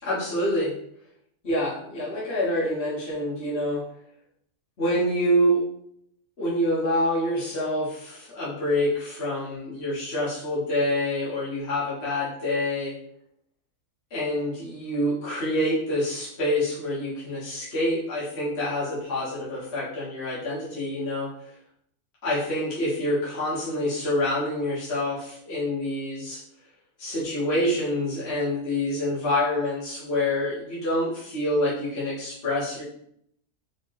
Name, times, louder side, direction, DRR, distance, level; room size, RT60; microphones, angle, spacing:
voice 1, 0.0-0.7 1.4-3.8 4.8-5.6 6.4-12.9 14.1-21.3 22.2-26.4 27.0-32.8, left 1 dB, 45° left, -9 dB, 1.7 m, -26 dB
4.8 x 3.4 x 3.1 m, 0.70 s
omnidirectional pair, 1.7 m